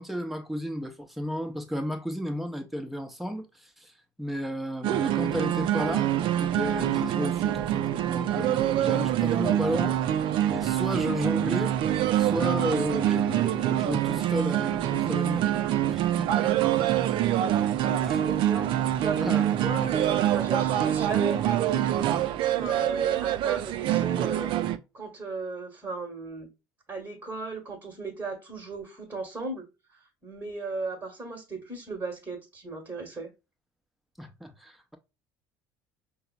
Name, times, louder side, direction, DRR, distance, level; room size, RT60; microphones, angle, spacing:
voice 1, 0.0-3.9 4.2-6.1 6.4-10.0 10.5-11.8 12.2-15.5 15.8-16.5 18.0-18.2 19.1-19.4 22.6-22.8 34.2-35.0, equal, ahead, 0.8 m, -33 dB
sound 1, 4.8-24.8, right 11 dB, 55° right, 0.4 m, -25 dB
voice 2, 17.8-22.0 22.6-24.5 24.9-26.5 26.9-33.3, right 3 dB, 20° right, 1.3 m, -36 dB
5.5 x 2.0 x 2.3 m
hypercardioid pair, 70°, 10 cm